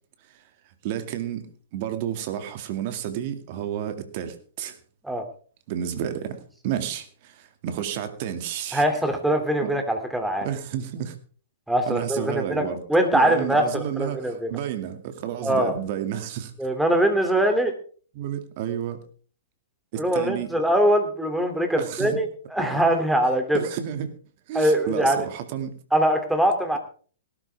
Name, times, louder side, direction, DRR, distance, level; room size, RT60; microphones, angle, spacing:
voice 1, 0.8-4.8 5.7-6.4 6.6-8.8 9.6-9.7 10.4-11.2 11.9-12.8 13.1-16.5 18.1-19.0 19.9-20.5 21.8-22.2 22.7-22.8 23.5-24.1 24.5-25.7, right 10 dB, 45° right, 2.3 m, -31 dB
voice 2, 8.7-10.5 11.7-14.6 15.4-15.7 16.6-17.7 20.0-23.7 24.5-25.2 25.9-26.8, right 1 dB, 5° right, 2.7 m, -22 dB
18.0 x 12.5 x 3.5 m
hypercardioid pair, 115°, 0 cm